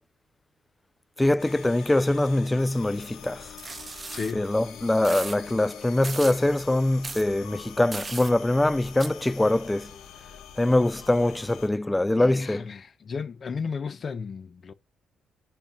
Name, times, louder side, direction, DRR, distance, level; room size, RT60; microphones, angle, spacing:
voice 1, 1.2-3.4 4.3-9.9 10.6-12.7, left 1 dB, 10° left, 0.3 m, -23 dB
sound 1, 1.4-11.7, left 9 dB, 80° left, 1.5 m, -45 dB
sound 2, 3.6-4.3 5.0-5.4 6.0-6.4 7.0-7.2 7.9-8.3 9.0-9.1, right 3 dB, 25° right, 1.0 m, -36 dB
voice 2, 4.1-4.5 12.2-14.7, left 5 dB, 45° left, 0.9 m, -34 dB
10.5 x 4.5 x 2.7 m
cardioid pair, 90°, 0 cm